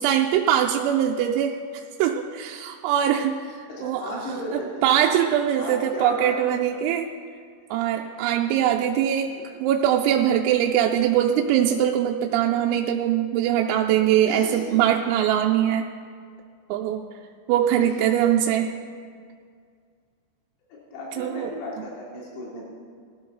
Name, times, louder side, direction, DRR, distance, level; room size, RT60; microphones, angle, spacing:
voice 1, 0.0-1.6 2.0-4.0 4.8-7.1 7.7-9.3 9.6-15.9 16.7-17.0 17.5-18.7 21.2-21.5, right 10 dB, 85° right, 1 dB, 3.3 m, -22 dB
voice 2, 3.7-5.0 5.6-6.4 9.3-9.4 14.3-14.8 17.8-18.2 20.7-22.6, left 1 dB, 85° left, -5 dB, 5.5 m, -35 dB
20.5 x 14.0 x 4.0 m, 2.1 s
omnidirectional pair, 6.0 m